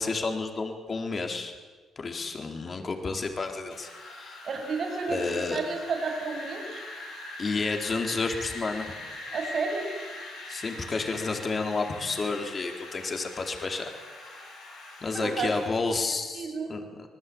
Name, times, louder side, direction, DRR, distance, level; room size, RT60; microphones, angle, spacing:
voice 1, 0.0-1.5 2.0-4.4 5.1-5.6 7.4-9.0 10.5-13.9 15.0-16.8, left 3 dB, 35° left, 4 dB, 4.1 m, -31 dB
Wind, 3.7-15.7, left 1 dB, 80° left, 7.7 m, -42 dB
voice 2, 4.4-5.2 5.5-6.8 9.3-9.9 15.1-15.5 16.3-16.7, right 4 dB, 55° right, 3 dB, 6.8 m, -31 dB
27.5 x 20.0 x 8.9 m, 1.4 s
cardioid pair, 90°, 0 cm